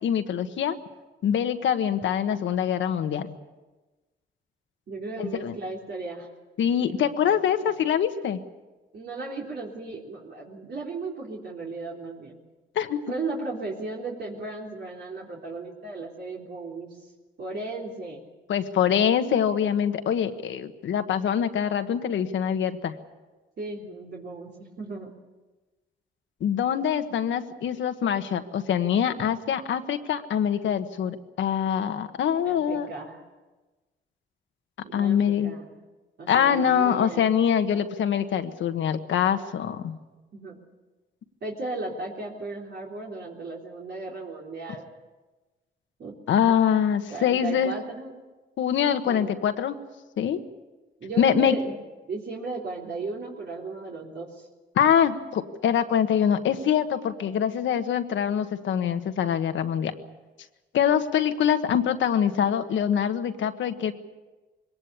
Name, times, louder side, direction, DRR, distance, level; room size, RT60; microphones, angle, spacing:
voice 1, 0.0-0.8 1.2-3.3 5.2-5.5 6.6-8.4 12.7-13.1 18.5-22.9 26.4-32.9 34.9-35.5 36.3-40.0 46.3-47.7 48.6-49.8 50.2-50.4 51.2-51.6 54.7-59.9 60.7-63.9, left 8 dB, 80° left, 8 dB, 1.5 m, -24 dB
voice 2, 4.9-6.3 6.8-7.8 8.9-12.4 13.1-17.0 17.4-18.3 23.6-25.1 32.5-33.2 34.8-35.8 36.2-37.4 40.3-40.6 41.4-44.8 46.0-46.1 47.1-48.2 49.1-49.3 51.0-51.8 52.1-54.5, right 3 dB, 60° right, -3 dB, 3.7 m, -36 dB
22.0 x 18.5 x 8.4 m, 1.2 s
cardioid pair, 75°, 19 cm